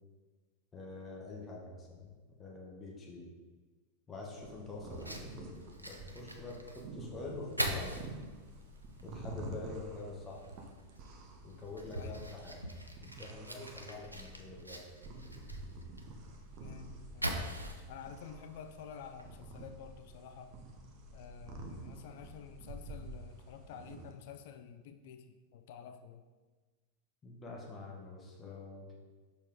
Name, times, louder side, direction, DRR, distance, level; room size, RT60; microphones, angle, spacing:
voice 1, 0.7-2.1 2.4-3.3 4.1-5.6 5.9-8.0 9.0-10.4 11.4-12.7 13.0-14.8 27.2-28.9, left 3 dB, 20° left, -2 dB, 1.1 m, -46 dB
sound 1, 4.4-24.1, right 2 dB, 40° right, 0.8 m, -49 dB
Fire, 4.9-19.5, right 1 dB, 85° right, 0.5 m, -44 dB
voice 2, 16.6-17.4 17.9-20.6 21.1-26.2, left 7 dB, 50° left, 8 dB, 0.3 m, -50 dB
6.1 x 4.1 x 3.8 m, 1.4 s
figure-of-eight pair, 90°, 0 cm